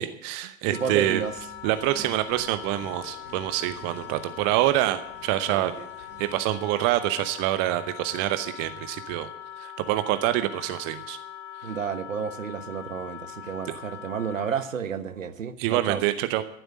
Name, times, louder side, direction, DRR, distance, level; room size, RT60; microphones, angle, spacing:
voice 1, 0.0-1.2 1.6-5.7 6.0-9.3 9.6-11.2 15.6-16.4, right 15 dB, 30° right, 11 dB, 0.8 m, -26 dB
Wind instrument woodwind instrument, 0.7-14.8, left 11 dB, 55° left, 0.8 m, -42 dB
voice 2, 0.7-1.3 5.5-5.9 11.6-16.0, right 7 dB, 70° right, 11 dB, 1.2 m, -31 dB
sound 1, 1.2-6.5, right 1 dB, 40° left, 3.7 m, -49 dB
13.5 x 7.9 x 9.0 m, 0.78 s
figure-of-eight pair, 100°, 41 cm